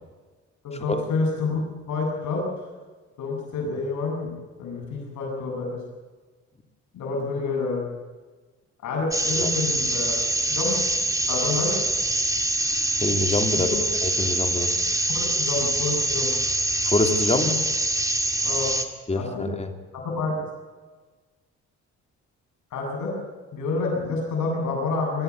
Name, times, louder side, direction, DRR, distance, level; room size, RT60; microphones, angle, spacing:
voice 1, 0.6-2.4 3.2-5.8 6.9-7.9 8.8-10.1 10.5-10.8 11.3-11.7 13.7-13.8 15.1-16.3 18.4-18.7 19.2-19.5 20.0-20.4 22.7-23.1 23.5-25.2, left 3 dB, 75° left, 0 dB, 7.7 m, -28 dB
sound 1, 9.1-18.8, right 2 dB, 10° right, 2.1 m, -24 dB
voice 2, 13.0-13.8 14.0-14.7 16.8-17.5 19.1-19.7, left 2 dB, 20° left, 5 dB, 3.1 m, -25 dB
23.0 x 14.0 x 8.4 m, 1.3 s
cardioid pair, 90°, 30 cm